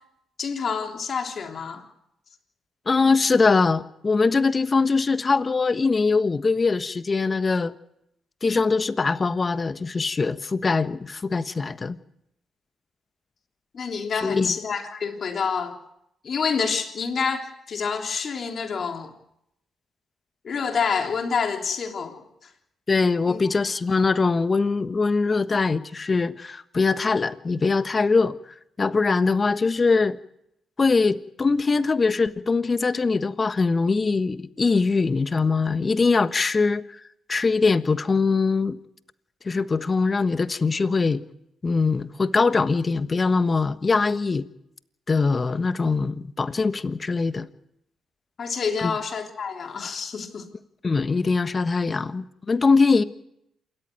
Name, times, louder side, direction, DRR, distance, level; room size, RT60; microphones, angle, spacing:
voice 1, 0.4-1.8 13.7-15.7 16.2-19.1 20.4-22.2 23.3-23.4 48.4-50.5, left 5 dB, 55° left, 3.4 m, -27 dB
voice 2, 2.9-7.7 8.4-12.0 14.2-14.5 22.9-28.4 28.8-30.2 30.8-36.9 37.3-38.8 39.4-41.2 41.6-44.5 45.1-47.4 48.8-48.9 50.8-53.0, left 4 dB, 35° left, 1.3 m, -22 dB
27.5 x 14.0 x 9.3 m
hypercardioid pair, 50°, 0 cm